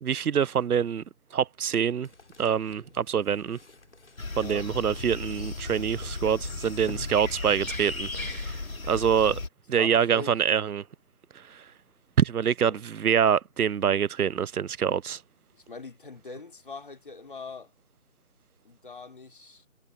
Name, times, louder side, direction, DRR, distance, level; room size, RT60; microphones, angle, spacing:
voice 1, 0.0-1.0 1.3-2.1 2.4-3.6 4.4-8.6 8.9-9.4 9.7-10.8 11.5-11.6 12.2-15.2, right 8 dB, 90° right, 0.6 m, -25 dB
sound 1, 2.0-8.2, left 3 dB, 50° left, 4.0 m, -51 dB
sound 2, 4.2-9.5, left 3 dB, 70° left, 3.2 m, -35 dB
voice 2, 4.3-4.7 9.8-10.4 12.7-12.8 15.5-17.7 18.7-19.6, left 4 dB, 35° left, 3.6 m, -42 dB
figure-of-eight pair, 170°, 43 cm